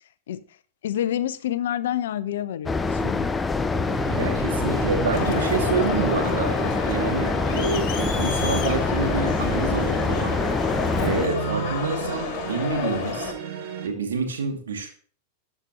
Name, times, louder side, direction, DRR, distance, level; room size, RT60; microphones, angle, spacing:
voice 1, 0.8-3.3, left 11 dB, 60° left, 0.6 m, -28 dB
sound 1, 2.7-11.3, left 4 dB, 15° left, 0.6 m, -25 dB
sound 2, 3.6-13.9, right 8 dB, 50° right, 2.0 m, -33 dB
voice 2, 4.2-6.5 6.8-10.4 11.0-13.3 13.8-14.9, right 4 dB, 65° right, 2.5 m, -28 dB
Crowd, 5.1-13.3, left 8 dB, 40° left, 2.3 m, -31 dB
13.5 x 9.8 x 3.1 m
figure-of-eight pair, 90°, 0 cm